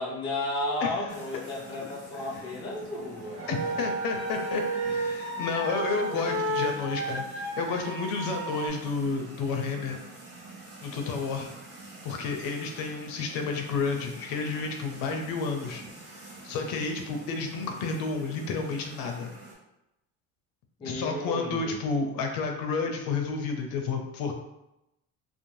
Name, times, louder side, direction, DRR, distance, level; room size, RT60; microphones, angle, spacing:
voice 1, 0.0-3.5 20.8-21.8, left 2 dB, 15° left, -5 dB, 0.4 m, -33 dB
sound 1, 1.1-19.5, right 2 dB, 75° right, 1.1 m, -47 dB
sound 2, 3.3-8.7, right 2 dB, 35° right, 0.6 m, -32 dB
voice 2, 3.5-10.0 10.8-11.5 12.0-15.8 16.4-19.3 20.8-24.3, left 4 dB, 70° left, 3 dB, 0.5 m, -31 dB
2.6 x 2.1 x 3.1 m, 0.89 s
cardioid pair, 175°, 36 cm